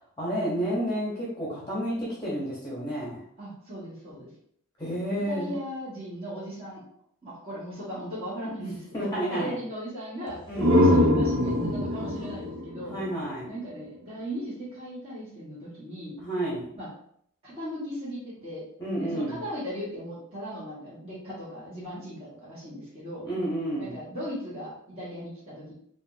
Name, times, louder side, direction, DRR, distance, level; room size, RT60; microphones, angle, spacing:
voice 1, 0.2-3.2 4.8-5.6 8.6-9.6 10.5-11.0 12.8-13.5 16.2-16.7 18.8-19.4 23.2-24.0, right 1 dB, 20° left, -6 dB, 0.9 m, -30 dB
voice 2, 3.4-4.3 4.9-5.0 5.3-6.8 7.2-12.9 13.5-16.1 16.7-16.9 17.4-18.6 19.0-23.2 23.7-25.7, equal, 25° right, -12 dB, 1.6 m, -38 dB
sound 1, 10.3-14.0, left 1 dB, 65° right, 0.7 m, -24 dB
5.0 x 2.5 x 2.6 m, 0.68 s
head